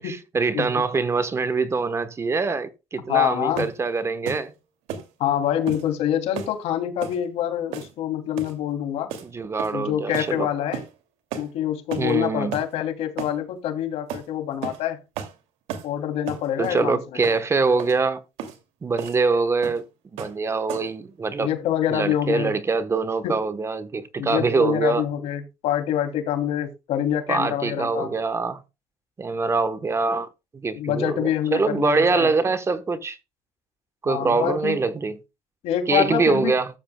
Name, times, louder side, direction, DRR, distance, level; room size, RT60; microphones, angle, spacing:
voice 1, 0.0-4.5 9.2-10.5 12.0-12.6 16.6-18.2 18.8-19.8 20.1-21.5 21.9-25.0 27.3-28.6 29.2-30.3 30.5-33.2 34.0-35.2 35.9-36.7, right 4 dB, 25° right, 1.1 m, -24 dB
voice 2, 3.1-3.7 5.2-9.1 9.7-10.8 11.4-15.0 15.8-17.0 21.4-22.5 23.2-23.3 24.2-28.1 30.7-32.3 34.1-34.8 35.6-36.5, left 10 dB, 75° left, 2.9 m, -26 dB
sound 1, 3.6-3.8 4.3-4.5 4.9-5.1 5.7-5.9 6.4-6.6 7.0-7.2 7.7-8.0 8.4-8.6 9.1-9.3 9.6-9.9 10.1-10.3 10.7-10.9 11.3-11.5 11.9-12.1 12.5-12.7 13.2-13.4 14.1-14.3 14.6-14.8 15.2-15.4 15.7-15.9 16.3-16.8 17.2-17.4 17.8-18.0 18.4-18.6 19.0-19.2 19.6-19.8 20.2-20.4 20.7-21.0, right 8 dB, 85° right, 2.5 m, -34 dB
14.5 x 12.5 x 2.3 m
cardioid pair, 120°, 11 cm